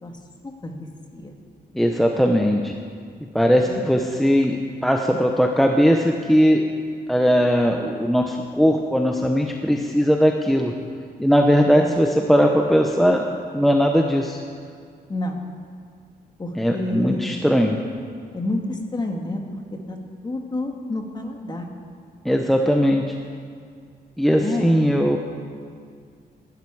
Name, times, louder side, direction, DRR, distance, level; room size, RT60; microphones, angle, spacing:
voice 1, 1.7-2.7 3.3-4.6 4.8-6.6 7.1-10.7 11.2-13.2 13.5-14.4 16.6-17.7 22.2-23.1 24.2-25.2, equal, ahead, 2 dB, 0.8 m, -19 dB
voice 2, 15.1-15.4 16.4-17.3 18.3-19.6 19.9-20.0 20.2-21.7 24.3-24.9, left 2 dB, 25° left, 3 dB, 1.8 m, -29 dB
19.5 x 12.0 x 4.8 m, 2.2 s
cardioid pair, 120°, 17 cm